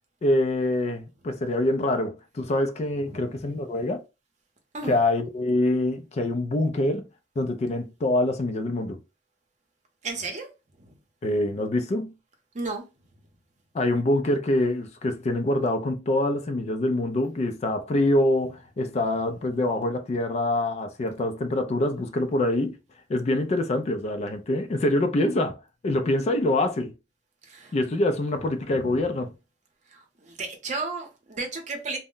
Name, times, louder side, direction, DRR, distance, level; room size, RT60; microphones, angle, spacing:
voice 1, 0.2-4.0 4.8-7.0 7.4-9.0 11.2-12.1 13.7-22.8 23.1-25.6 25.8-26.9 27.7-29.3, left 1 dB, 40° left, 0.3 m, -25 dB
voice 2, 10.0-10.5 10.8-10.9 12.5-12.8 27.5-27.7 28.7-29.0 29.9-32.0, right 3 dB, 40° right, 0.7 m, -34 dB
2.1 x 2.0 x 3.7 m
head